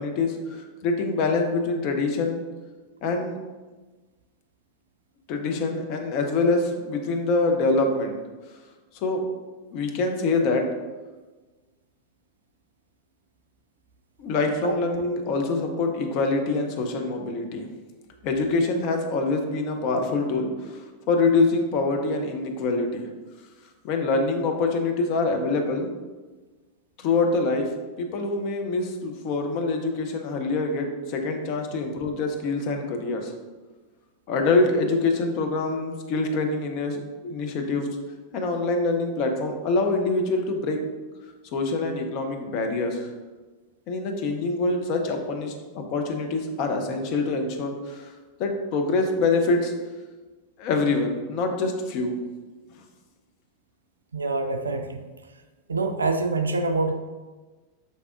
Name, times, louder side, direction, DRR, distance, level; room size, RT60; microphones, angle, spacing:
voice 1, 0.0-2.4 3.0-3.4 5.3-8.2 9.0-9.2 9.7-10.6 14.2-17.7 18.2-23.0 23.8-25.9 27.0-27.7 28.0-33.3 34.3-37.9 38.3-40.8 41.5-43.1 43.9-48.1 48.4-49.7 50.6-52.2, left 3 dB, 40° left, 4 dB, 0.5 m, -25 dB
voice 2, 54.1-55.0 55.7-56.9, right 3 dB, 75° right, 7 dB, 0.3 m, -25 dB
5.3 x 3.4 x 2.4 m, 1.3 s
figure-of-eight pair, 90°, 0 cm